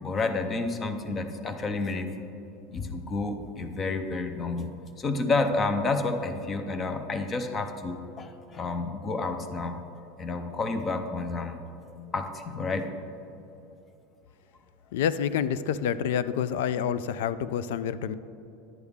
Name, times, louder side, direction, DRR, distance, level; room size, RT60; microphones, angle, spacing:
voice 1, 0.0-2.3 2.7-4.7 5.0-9.8 10.2-11.6 12.1-12.9, left 3 dB, 15° left, 8 dB, 0.5 m, -30 dB
voice 2, 14.9-18.1, left 8 dB, 75° left, 15 dB, 0.3 m, -28 dB
10.5 x 8.1 x 3.5 m, 2.9 s
supercardioid pair, 180°, 0 cm